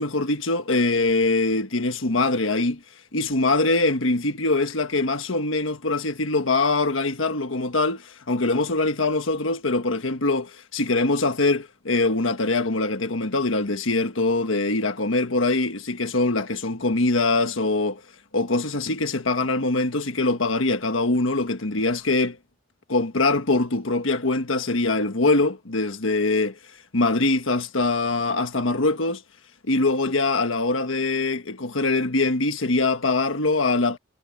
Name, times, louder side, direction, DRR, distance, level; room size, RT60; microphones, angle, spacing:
voice 1, 0.0-2.8 3.1-18.0 18.3-22.4 22.9-26.6 26.9-29.2 29.7-34.0, left 2 dB, 75° left, 1.5 m, -23 dB
head